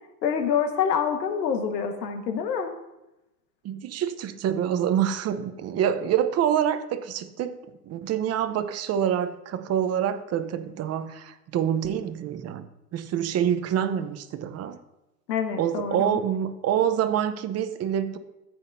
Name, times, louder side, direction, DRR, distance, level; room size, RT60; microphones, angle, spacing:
voice 1, 0.2-2.7 15.3-16.2, left 7 dB, 85° left, 5 dB, 1.6 m, -26 dB
voice 2, 3.6-7.6 7.8-12.7 12.9-14.8 15.6-18.2, right 9 dB, 30° right, 10 dB, 0.8 m, -26 dB
14.5 x 8.1 x 2.7 m, 0.95 s
hypercardioid pair, 105°, 49 cm